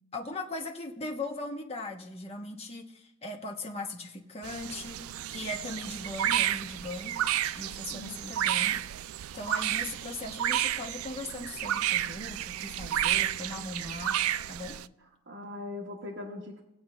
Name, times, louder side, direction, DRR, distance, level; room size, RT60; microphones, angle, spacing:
voice 1, 0.1-5.0 5.3-7.2 7.6-8.8 9.3-14.2 14.5-14.8, left 2 dB, 30° left, 1 dB, 1.1 m, -39 dB
sound 1, 4.4-14.9, right 12 dB, 80° right, 0.3 m, -31 dB
voice 2, 7.9-8.3 12.9-13.3 15.3-16.6, left 2 dB, 55° right, -2 dB, 1.2 m, -41 dB
19.5 x 7.7 x 3.3 m, 0.87 s
head